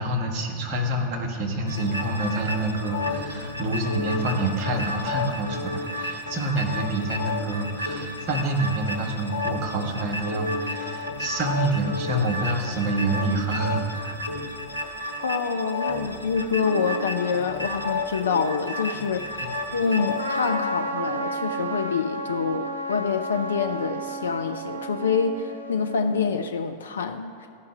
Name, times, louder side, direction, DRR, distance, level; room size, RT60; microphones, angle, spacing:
voice 1, 0.0-14.2 19.4-19.5, right 2 dB, 40° right, 0 dB, 1.3 m, -27 dB
sound 1, 1.7-20.5, left 2 dB, 85° left, 1.1 m, -32 dB
voice 2, 15.2-27.4, left 5 dB, 65° left, 7 dB, 0.3 m, -26 dB
Trumpet, 20.2-26.4, right 2 dB, 85° right, 0.7 m, -32 dB
14.0 x 5.4 x 3.3 m, 2.3 s
figure-of-eight pair, 90°, 0 cm